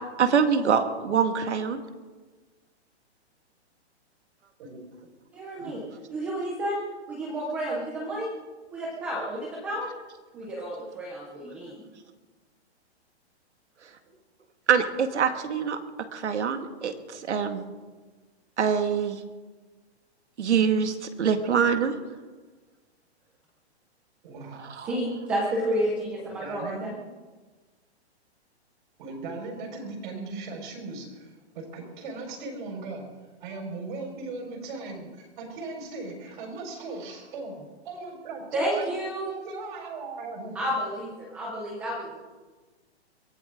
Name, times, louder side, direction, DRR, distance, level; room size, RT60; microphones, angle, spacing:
voice 1, 0.0-1.8 14.7-15.8 16.1-17.7 18.6-19.2 20.4-21.9 24.6-25.0, right 7 dB, 85° right, 7 dB, 1.9 m, -25 dB
voice 2, 5.3-5.8 6.1-6.8 7.1-8.3 8.7-9.9 10.3-11.8 24.9-26.9 38.5-39.4 40.6-42.2, right 1 dB, 5° right, -2 dB, 0.4 m, -30 dB
voice 3, 24.2-24.8 26.2-26.9 29.0-33.0 33.4-37.6 37.8-38.9 39.4-40.6, right 3 dB, 45° right, 1 dB, 4.9 m, -38 dB
23.0 x 15.5 x 3.6 m, 1.3 s
hypercardioid pair, 160°, 34 cm